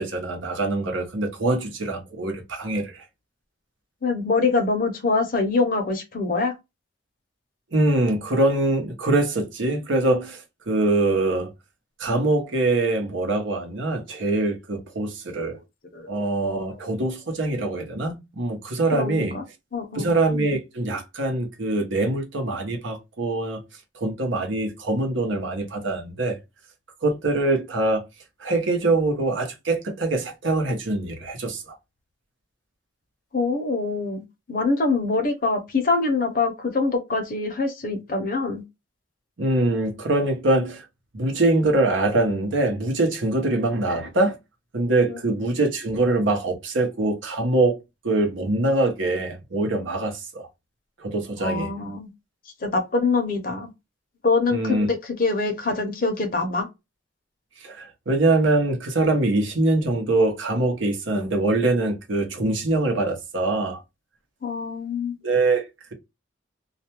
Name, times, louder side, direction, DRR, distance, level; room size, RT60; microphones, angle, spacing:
voice 1, 0.0-3.0 7.7-11.5 12.0-15.6 16.1-19.3 19.9-23.6 23.9-26.4 27.0-28.0 28.4-31.6 39.4-40.8 41.1-44.4 44.7-47.8 48.0-50.5 51.0-51.7 54.5-54.9 57.6-63.8 65.2-65.9, right 2 dB, 85° right, 0.8 m, -23 dB
voice 2, 4.0-6.5 15.9-16.1 18.9-19.4 19.7-20.1 33.3-38.6 51.4-52.1 52.6-53.7 54.2-56.7 64.4-65.2, left 3 dB, 45° left, 0.7 m, -24 dB
2.4 x 2.1 x 2.8 m
head